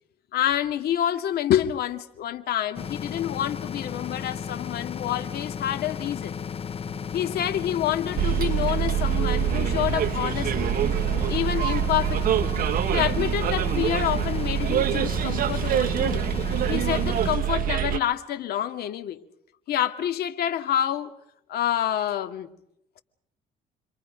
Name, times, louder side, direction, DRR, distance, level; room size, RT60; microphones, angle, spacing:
voice 1, 0.3-6.3 7.1-10.7 11.3-12.5 12.9-16.2 16.7-19.2 19.7-21.1 21.5-22.5, left 11 dB, 65° left, 2.2 m, -27 dB
sound 1, 2.7-17.4, left 7 dB, 35° left, 0.8 m, -34 dB
sound 2, 6.6-14.5, equal, 20° right, 4.7 m, -39 dB
Bus, 8.2-18.0, right 11 dB, 60° right, 1.0 m, -25 dB
30.0 x 23.5 x 5.2 m
cardioid pair, 110°, 17 cm